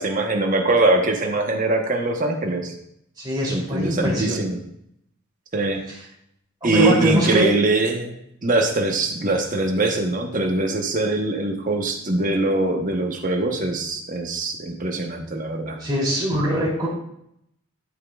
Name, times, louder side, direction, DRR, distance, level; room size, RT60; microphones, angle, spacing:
voice 1, 0.0-2.7 3.5-4.6 5.5-5.8 6.6-8.2 8.4-15.8, right 2 dB, 40° right, 3 dB, 1.0 m, -22 dB
voice 2, 3.2-4.4 6.6-7.6 15.8-16.9, equal, 20° right, -6 dB, 2.9 m, -22 dB
10.0 x 8.3 x 2.4 m, 0.75 s
head